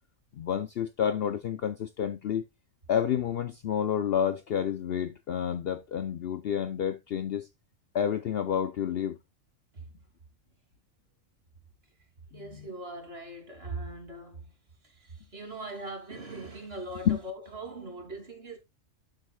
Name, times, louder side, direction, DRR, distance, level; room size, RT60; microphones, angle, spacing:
voice 1, 0.3-2.4 2.9-7.5 7.9-9.2 12.3-12.7 17.1-17.2, left 9 dB, 60° left, 0.7 m, -29 dB
voice 2, 12.3-14.4 15.0-18.6, right 2 dB, 50° right, 3.1 m, -40 dB
12.0 x 7.6 x 2.3 m
omnidirectional pair, 1.3 m